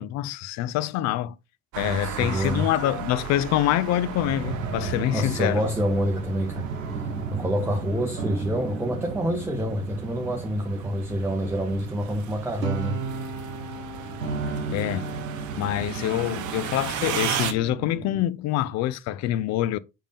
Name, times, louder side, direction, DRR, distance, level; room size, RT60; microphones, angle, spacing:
voice 1, 0.0-1.4 1.8-5.6 14.7-15.2 15.6-19.8, left 13 dB, 45° left, 0.5 m, -26 dB
sound 1, 1.7-17.5, right 10 dB, 50° right, 0.9 m, -37 dB
voice 2, 1.8-2.7 5.1-6.7 7.3-13.0, equal, 5° right, 0.9 m, -27 dB
sound 2, 1.8-18.2, right 4 dB, 85° right, 1.1 m, -34 dB
5.5 x 5.0 x 3.4 m
figure-of-eight pair, 50°, 39 cm